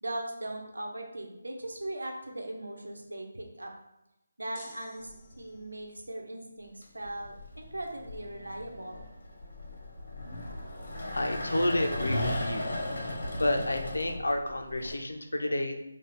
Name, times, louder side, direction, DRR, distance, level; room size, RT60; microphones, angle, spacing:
voice 1, 0.0-3.7 4.4-9.1, right 1 dB, 85° right, 1 dB, 0.9 m, -39 dB
sound 1, 4.5-5.9, left 2 dB, 25° left, 0.6 m, -52 dB
sound 2, 5.1-5.5 6.7-14.9, left 1 dB, 60° left, 1.1 m, -36 dB
voice 2, 11.1-12.7 13.0-15.8, left 1 dB, 80° left, 4 dB, 0.6 m, -30 dB
4.3 x 2.4 x 4.4 m, 0.89 s
figure-of-eight pair, 160°, 0 cm